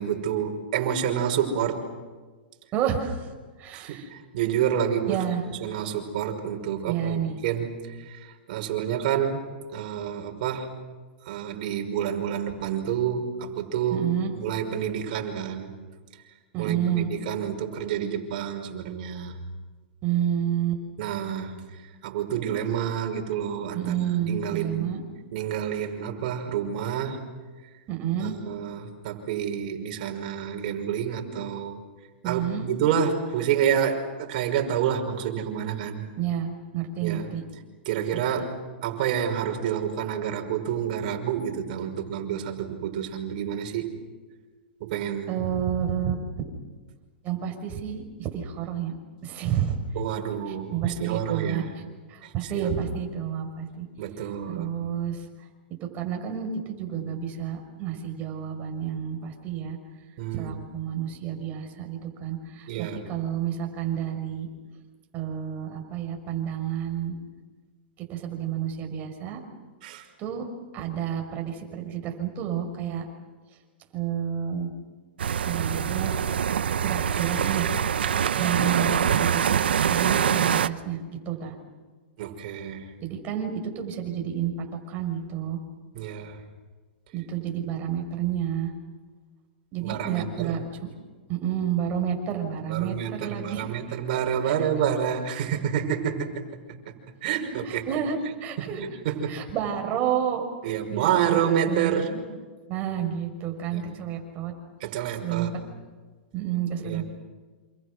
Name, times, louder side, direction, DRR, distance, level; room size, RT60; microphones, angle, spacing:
voice 1, 0.0-1.8 3.7-5.2 5.6-10.7 11.3-14.1 14.3-15.7 16.6-19.4 21.0-21.5 22.0-24.9 25.3-27.2 28.2-31.8 32.2-36.0 37.0-37.3 37.9-44.0 44.8-45.4 50.0-51.7 52.2-52.7 54.0-54.7 60.2-60.5 62.7-63.1 69.8-70.0 82.2-82.9 85.9-86.4 89.8-90.6 92.7-96.4 96.9-97.0 97.2-97.9 98.6-99.5 100.6-102.1 103.7-103.9 104.8-105.5 106.8-107.0, right 9 dB, 55° right, 4 dB, 5.6 m, -29 dB
voice 2, 2.7-3.3 3.6-4.1 5.1-5.4 6.9-7.4 13.9-14.3 16.5-17.1 20.0-20.8 23.7-25.0 27.9-28.4 32.2-32.7 36.2-37.4 45.3-46.5 47.2-48.9 49.2-49.8 50.5-51.8 52.1-53.9 54.5-55.2 55.8-59.8 60.3-64.5 65.1-67.1 68.1-69.4 70.2-70.5 70.7-73.1 73.9-74.7 75.4-76.2 76.8-77.7 78.4-81.0 81.3-81.5 83.0-85.6 87.1-88.7 89.7-90.9 91.3-93.7 94.4-94.5 97.4-98.8 99.3-101.4 101.7-102.2 102.7-104.5 105.2-105.5 106.3-107.0, right 9 dB, 35° right, 3 dB, 6.0 m, -30 dB
sound 1, 75.2-80.7, right 8 dB, 85° right, 0.9 m, -24 dB
28.0 x 28.0 x 6.4 m, 1.4 s
hypercardioid pair, 130°, 5 cm